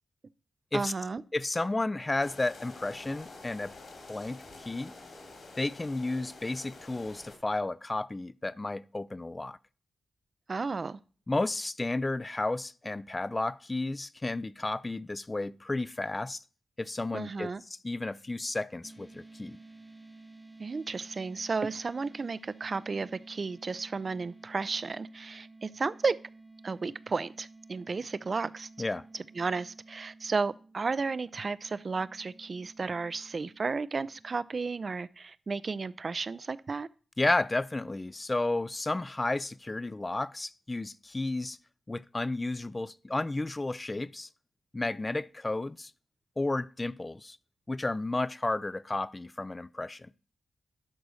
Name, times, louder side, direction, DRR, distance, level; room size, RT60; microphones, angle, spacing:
voice 1, 0.7-1.2 10.5-11.0 17.1-17.6 20.6-26.2 26.6-28.7 29.1-36.9, right 4 dB, 45° right, 0.4 m, -33 dB
voice 2, 1.3-3.7 4.1-4.9 5.6-9.6 11.3-16.4 16.8-17.5 17.8-19.6 28.8-29.1 37.2-41.6 41.9-44.3 44.7-45.9 46.4-47.4 47.7-50.1, left 2 dB, 25° left, 0.4 m, -32 dB
sound 1, 2.2-7.4, left 3 dB, 65° left, 3.1 m, -48 dB
sound 2, 18.8-34.3, right 2 dB, 5° right, 0.8 m, -53 dB
12.0 x 4.0 x 6.3 m
cardioid pair, 80°, 0 cm